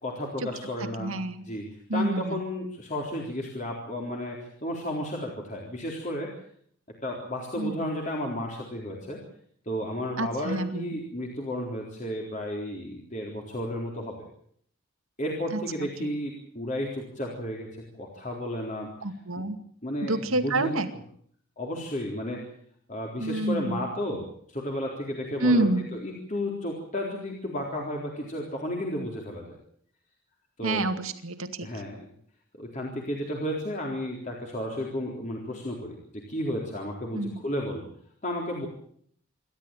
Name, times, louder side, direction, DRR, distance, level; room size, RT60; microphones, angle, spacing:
voice 1, 0.0-1.1 1.4-1.7 1.9-6.3 7.0-9.2 9.7-14.1 15.2-17.7 17.9-18.9 19.4-19.5 19.8-20.8 21.6-22.4 22.9-25.7 26.0-29.6 30.6-30.8 31.6-32.1 32.6-36.0 36.3-37.8 38.2-38.7, left 1 dB, 35° left, -1 dB, 3.9 m, -33 dB
voice 2, 1.0-1.4 1.9-2.4 7.6-7.8 10.2-11.0 16.0-16.1 19.0-19.6 20.0-20.9 23.2-23.8 25.4-26.0 30.6-31.7 37.1-37.4, right 2 dB, 75° right, 8 dB, 2.3 m, -28 dB
27.5 x 12.5 x 9.1 m, 0.64 s
head